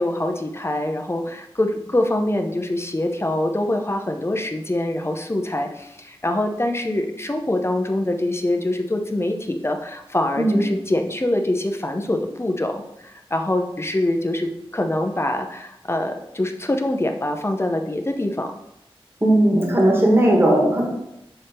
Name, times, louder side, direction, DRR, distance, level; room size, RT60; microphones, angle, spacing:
voice 1, 0.0-18.5, left 1 dB, 25° left, 5 dB, 0.7 m, -24 dB
voice 2, 19.2-20.8, right 1 dB, 25° right, -2 dB, 1.6 m, -17 dB
6.8 x 3.5 x 4.3 m, 0.83 s
wide cardioid pair, 55°, 10 cm